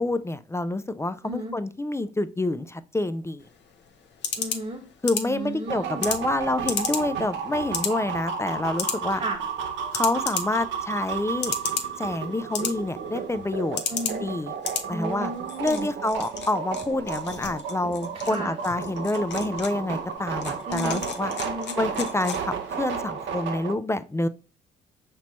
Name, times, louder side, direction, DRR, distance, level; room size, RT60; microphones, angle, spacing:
voice 1, 0.0-3.5 5.0-9.2 9.9-11.5 12.0-13.8 14.2-14.5 14.9-15.3 15.6-21.3 21.7-24.3, left 2 dB, 15° left, 12 dB, 0.4 m, -27 dB
voice 2, 1.2-1.6 4.4-4.8 5.2-6.1 9.1-9.4 13.9-14.2 14.9-15.9 18.1-18.6 20.7-21.1 21.4-21.8, right 1 dB, 35° right, -2 dB, 1.1 m, -34 dB
sound 1, 3.4-22.8, left 6 dB, 60° left, 0.8 m, -35 dB
sound 2, 5.7-23.7, right 6 dB, 65° right, 0.9 m, -33 dB
6.0 x 3.0 x 3.0 m, 0.36 s
hypercardioid pair, 50°, 21 cm